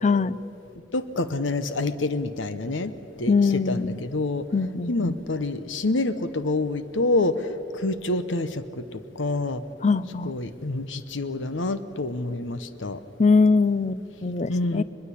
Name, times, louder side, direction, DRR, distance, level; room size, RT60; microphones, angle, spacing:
voice 1, 0.0-0.4 3.3-4.0 4.5-5.2 9.8-10.3 13.2-14.8, left 4 dB, 40° left, 17 dB, 0.6 m, -22 dB
voice 2, 0.9-2.9 3.2-3.3 3.7-4.5 4.9-9.6 10.2-13.0 14.5-14.8, left 2 dB, 80° left, 12 dB, 1.0 m, -27 dB
22.5 x 21.5 x 8.4 m, 2.9 s
head